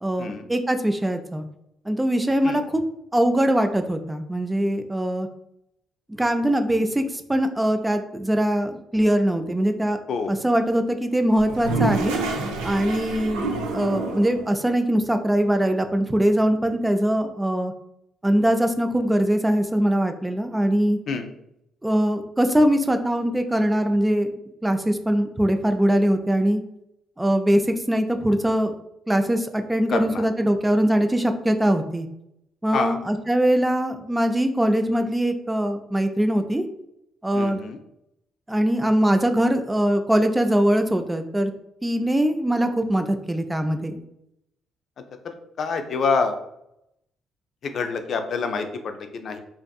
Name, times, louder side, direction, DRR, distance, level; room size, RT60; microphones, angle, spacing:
voice 1, 0.0-1.4 1.9-2.8 3.1-5.3 6.1-10.0 10.3-12.2 12.6-17.7 18.2-21.0 21.8-24.3 24.6-26.6 27.2-28.7 29.1-32.1 32.6-36.7 37.2-37.6 38.5-41.5 41.8-44.0, right 1 dB, 15° right, 6 dB, 0.3 m, -22 dB
Toilet flush, 11.3-14.4, right 3 dB, 90° right, 0.4 m, -27 dB
voice 2, 29.9-30.3 32.7-33.0 37.3-37.8 45.6-46.4 47.6-49.4, left 4 dB, 60° left, 7 dB, 0.3 m, -27 dB
2.5 x 2.5 x 2.3 m, 0.79 s
hypercardioid pair, 55°, 0 cm